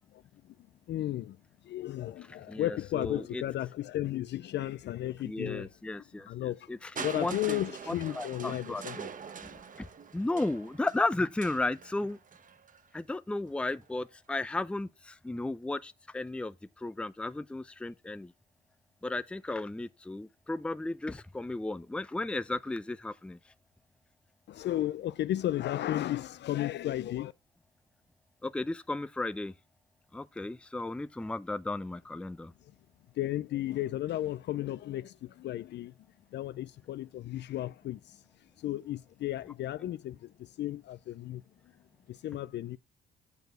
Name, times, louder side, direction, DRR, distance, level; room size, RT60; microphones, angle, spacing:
voice 1, 0.9-1.4 1.6-5.7 6.3-9.0 24.5-27.3 33.2-35.9 36.3-38.2 38.6-41.4 42.1-42.8, left 13 dB, 60° left, 0.4 m, -34 dB
voice 2, 2.5-3.4 5.2-7.6 7.9-9.1 9.8-9.9 10.1-12.2 12.9-18.3 19.0-23.4 28.4-29.5 30.1-32.5, left 2 dB, 5° left, 0.5 m, -34 dB
Crushing, 7.0-12.9 13.8-13.9, right 6 dB, 40° right, 0.9 m, -44 dB
8.3 x 4.6 x 6.6 m
cardioid pair, 90°, 20 cm